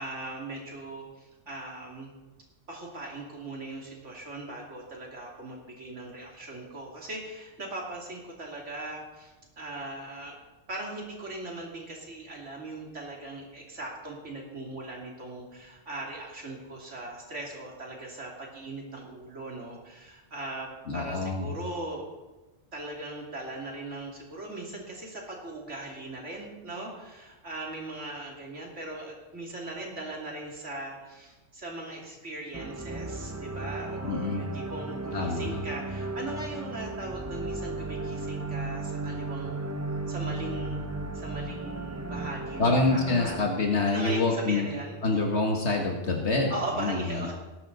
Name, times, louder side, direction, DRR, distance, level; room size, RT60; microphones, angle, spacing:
voice 1, 0.0-2.1 2.7-10.4 10.7-22.1 22.7-39.7 40.1-43.4 43.9-45.0 46.5-47.3, right 2 dB, 80° right, -1 dB, 3.1 m, -39 dB
voice 2, 20.9-21.5 34.1-34.4 35.1-35.6 42.6-44.7 45.0-47.3, left 3 dB, 70° left, 1 dB, 1.8 m, -26 dB
sound 1, 32.5-43.5, right 2 dB, 20° right, 0.4 m, -35 dB
19.0 x 11.5 x 4.0 m, 1.1 s
omnidirectional pair, 1.2 m